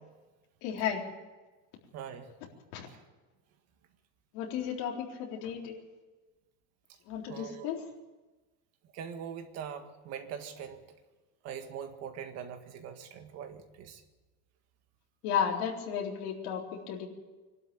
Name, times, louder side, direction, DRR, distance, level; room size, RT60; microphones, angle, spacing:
voice 1, 0.6-1.0 2.7-2.9 4.3-5.8 7.1-7.8 15.2-17.1, left 8 dB, 60° left, -1 dB, 4.2 m, -33 dB
voice 2, 1.9-2.3 2.9-3.0 6.9-7.0 7.3-7.7 8.8-10.9 11.4-14.0, right 8 dB, 40° right, 7 dB, 1.9 m, -42 dB
24.0 x 12.5 x 9.0 m, 1.2 s
cardioid pair, 175°, 40 cm